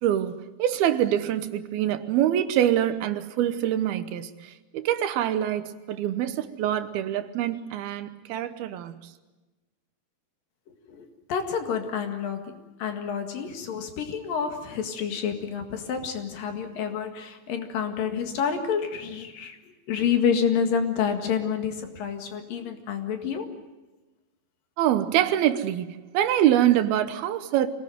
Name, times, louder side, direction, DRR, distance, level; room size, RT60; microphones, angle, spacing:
voice 1, 0.0-9.1 24.8-27.7, right 11 dB, 75° right, 2.9 m, -25 dB
voice 2, 10.7-19.6 19.9-23.5, left 7 dB, 65° left, 3.5 m, -28 dB
25.0 x 18.0 x 9.2 m
omnidirectional pair, 4.5 m